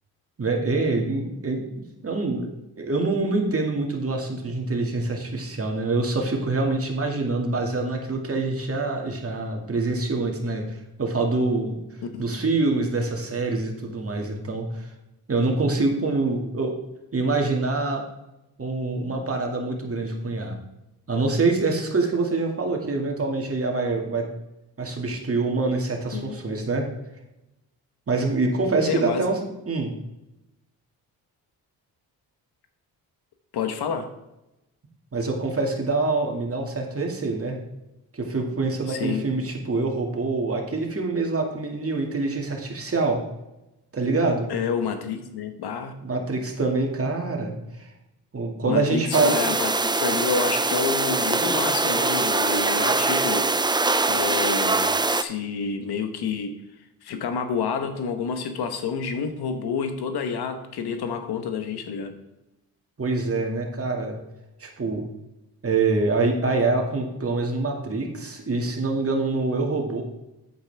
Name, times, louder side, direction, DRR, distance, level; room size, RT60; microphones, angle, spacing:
voice 1, 0.4-1.6 2.0-2.5 2.8-11.8 12.2-14.9 15.3-16.7 17.1-18.0 18.6-20.6 21.1-24.3 24.8-26.9 28.1-29.4 29.7-29.9 35.1-37.6 38.1-43.2 43.9-44.5 46.0-47.9 48.3-49.3 63.0-64.1 64.6-65.0 65.6-70.0, right 3 dB, 35° right, 1 dB, 2.2 m, -25 dB
voice 2, 28.8-29.2 33.5-34.1 38.9-39.2 44.5-45.9 48.7-53.5 54.1-56.6 57.0-62.2, left 6 dB, 75° left, 8 dB, 1.2 m, -29 dB
sound 1, 49.1-55.2, right 3 dB, 10° right, 0.5 m, -23 dB
8.8 x 8.4 x 3.5 m, 0.94 s
cardioid pair, 65°, 39 cm